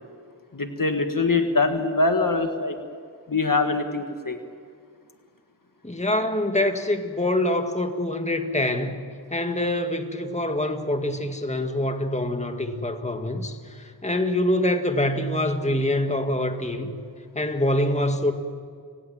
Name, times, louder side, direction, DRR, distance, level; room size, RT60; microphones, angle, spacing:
voice 1, 0.5-2.8 3.3-4.4, left 3 dB, 50° left, 6 dB, 1.7 m, -23 dB
voice 2, 5.8-9.0 9.3-17.0 17.4-18.3, left 1 dB, 15° left, 6 dB, 1.9 m, -25 dB
29.5 x 18.0 x 7.5 m, 2.2 s
wide cardioid pair, 50°, 44 cm